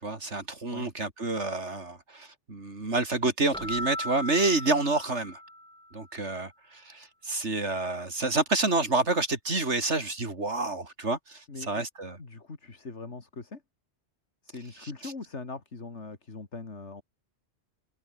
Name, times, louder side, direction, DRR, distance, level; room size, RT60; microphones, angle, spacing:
voice 1, 0.0-5.4 5.9-12.2 14.8-15.1, right 3 dB, 85° right, 3.9 m, -29 dB
Keyboard (musical), 3.5-5.9, equal, 5° left, 1.6 m, -37 dB
voice 2, 12.2-13.6 14.4-17.0, left 3 dB, 85° left, 3.0 m, -41 dB
omnidirectional pair, 1.2 m